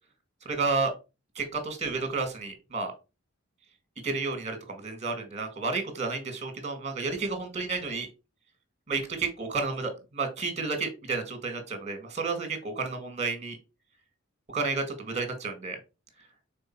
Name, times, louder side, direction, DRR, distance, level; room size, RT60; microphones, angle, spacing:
voice 1, 0.5-0.9 1.4-2.9 4.0-8.1 8.9-13.6 14.5-15.8, right 4 dB, 35° right, 7 dB, 1.8 m, -31 dB
5.3 x 4.0 x 4.5 m, 0.29 s
head